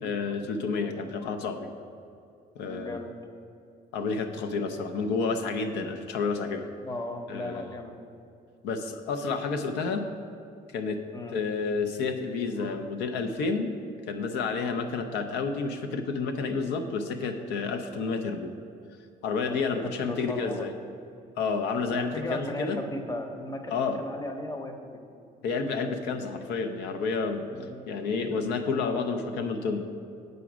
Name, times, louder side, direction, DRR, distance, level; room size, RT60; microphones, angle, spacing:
voice 1, 0.0-1.7 2.6-3.0 3.9-6.7 7.3-7.7 8.6-10.1 10.7-11.0 11.3-13.8 14.1-18.5 19.2-20.7 21.4-22.8 23.7-24.0 25.4-27.4 27.9-29.8, left 4 dB, 85° left, 7 dB, 0.6 m, -30 dB
voice 2, 2.6-3.1 6.8-8.0 11.1-11.4 19.4-19.6 20.1-20.7 21.9-25.0 27.5-27.8, left 1 dB, 20° left, 6 dB, 0.8 m, -36 dB
8.2 x 5.0 x 6.0 m, 2.5 s
cardioid pair, 110°, 17 cm